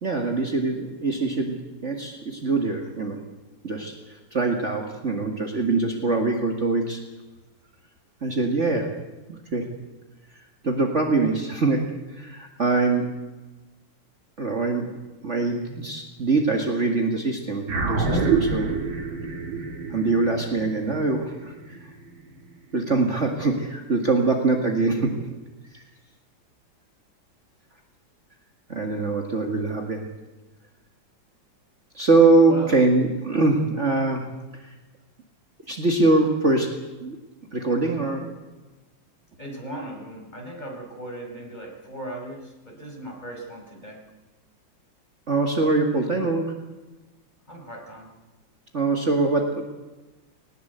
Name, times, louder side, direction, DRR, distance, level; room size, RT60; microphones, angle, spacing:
voice 1, 0.0-3.2 3.6-7.0 8.2-9.0 9.3-9.7 10.6-13.2 14.4-18.8 19.9-21.9 22.7-25.3 25.7-25.8 28.7-30.1 31.9-34.7 35.7-37.2 37.5-38.4 45.3-46.6 48.7-49.6, right 3 dB, 40° right, 3 dB, 2.2 m, -23 dB
sound 1, 17.7-22.3, right 4 dB, 90° right, 3.5 m, -27 dB
voice 2, 32.4-32.7 39.4-44.0 47.5-48.1, right 1 dB, 20° left, 1 dB, 5.0 m, -37 dB
20.5 x 19.5 x 8.1 m, 1.2 s
omnidirectional pair, 2.1 m